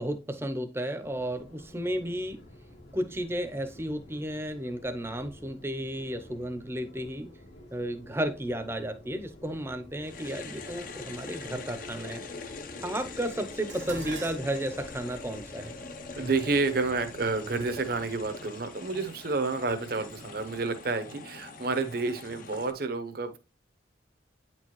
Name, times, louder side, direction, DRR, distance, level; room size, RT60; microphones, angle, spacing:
voice 1, 0.0-2.4 2.9-7.3 7.7-12.2 12.8-15.7, right 1 dB, 15° right, 0.7 m, -33 dB
Subway metro underground, 1.0-18.3, left 1 dB, 75° left, 2.1 m, -51 dB
sound 1, 10.0-22.7, left 3 dB, 45° left, 0.7 m, -43 dB
Dishes pots and pans, 13.7-18.1 18.9-19.3 19.7-20.6 20.8-20.9, right 3 dB, 80° right, 1.7 m, -46 dB
voice 2, 16.2-23.4, right 3 dB, 55° right, 0.8 m, -30 dB
9.0 x 4.5 x 3.0 m
head